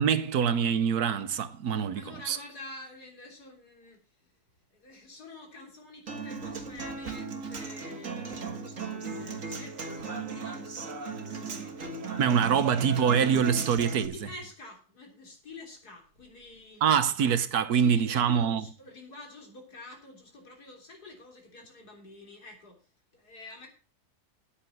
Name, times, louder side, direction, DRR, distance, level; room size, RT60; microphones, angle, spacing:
voice 1, 0.0-2.4 12.2-14.1 16.8-18.6, right 7 dB, 85° right, 1.5 m, -25 dB
voice 2, 1.7-4.4 4.7-12.0 12.5-12.9 14.1-17.1 17.7-23.7, left 2 dB, 90° left, 4.1 m, -48 dB
Human voice / Acoustic guitar, 6.1-14.1, right 4 dB, 55° right, 1.9 m, -37 dB
10.0 x 8.7 x 6.1 m
omnidirectional pair, 1.6 m